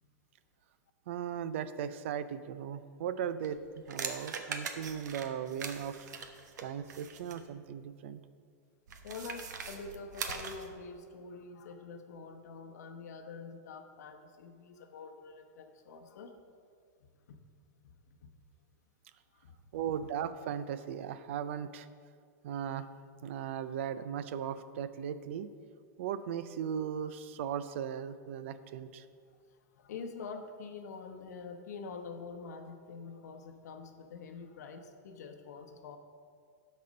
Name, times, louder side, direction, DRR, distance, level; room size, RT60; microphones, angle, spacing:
voice 1, 1.1-3.6 3.9-6.1 6.6-8.2 19.7-21.9 22.4-22.9 23.2-25.5 26.0-29.1, right 8 dB, 45° right, 13 dB, 0.4 m, -37 dB
sound 1, 3.4-7.5 8.9-10.7, right 6 dB, 85° right, 0.9 m, -41 dB
voice 2, 9.0-16.4 17.3-17.4 17.8-17.9 19.3-19.6 28.5-28.7 29.5-36.0, left 4 dB, 70° left, 5 dB, 0.9 m, -46 dB
12.5 x 4.3 x 5.3 m, 2.1 s
supercardioid pair, 175°, 9 cm